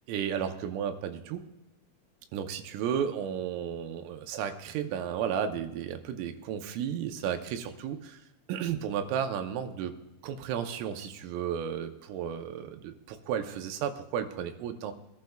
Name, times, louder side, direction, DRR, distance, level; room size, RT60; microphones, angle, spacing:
voice 1, 0.1-1.4 2.3-8.2 8.5-10.0 10.2-14.9, right 8 dB, 90° right, 7 dB, 3.5 m, -33 dB
23.0 x 12.0 x 2.3 m, 1.0 s
omnidirectional pair, 5.7 m